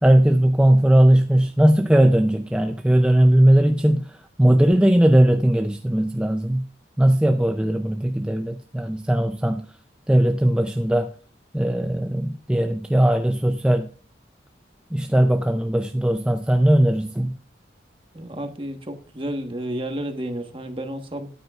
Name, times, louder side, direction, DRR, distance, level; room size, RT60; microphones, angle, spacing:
voice 1, 0.0-4.1 4.4-6.7 7.0-9.7 10.1-11.1 11.5-13.9 14.9-17.4, right 1 dB, 5° right, 0.4 m, -18 dB
voice 2, 18.1-21.3, right 1 dB, 30° right, 1.2 m, -31 dB
13.0 x 9.3 x 2.4 m
head